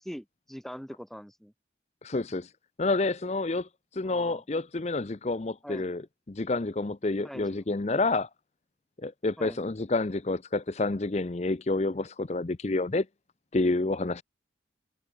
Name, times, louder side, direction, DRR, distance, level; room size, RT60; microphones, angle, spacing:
voice 1, 0.0-1.5 4.0-4.4 5.6-5.9 7.2-7.5 9.4-9.6, equal, ahead, 2.3 m, -42 dB
voice 2, 2.0-2.5 2.8-8.3 9.0-13.1 13.5-14.2, left 2 dB, 35° left, 0.6 m, -29 dB
head